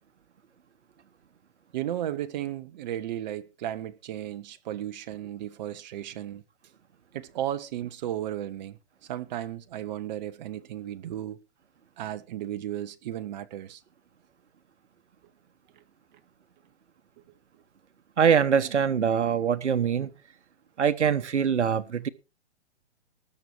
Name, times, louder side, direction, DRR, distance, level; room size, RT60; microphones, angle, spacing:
voice 1, 1.7-6.4 7.1-8.8 9.1-11.4 12.0-13.8, right 12 dB, 40° right, 1.2 m, -34 dB
voice 2, 18.2-20.1 20.8-22.1, right 7 dB, 90° right, 1.2 m, -23 dB
20.0 x 6.9 x 4.7 m
hypercardioid pair, 145°, 34 cm